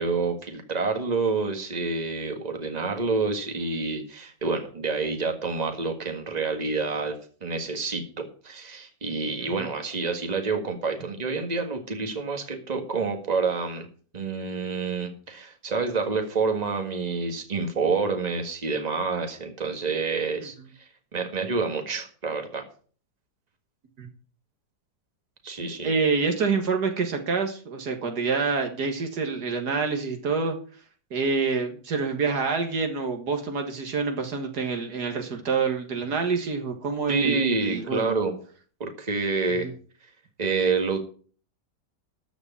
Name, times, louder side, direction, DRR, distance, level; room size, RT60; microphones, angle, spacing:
voice 1, 0.0-13.9 14.1-22.6 25.4-25.9 37.1-38.4 38.8-39.7 40.4-41.0, right 4 dB, 25° right, 4 dB, 1.8 m, -28 dB
voice 2, 25.6-30.6 31.1-38.2 39.6-39.7, right 4 dB, 70° right, 4 dB, 2.0 m, -27 dB
13.5 x 5.1 x 8.4 m, 0.43 s
omnidirectional pair, 1.8 m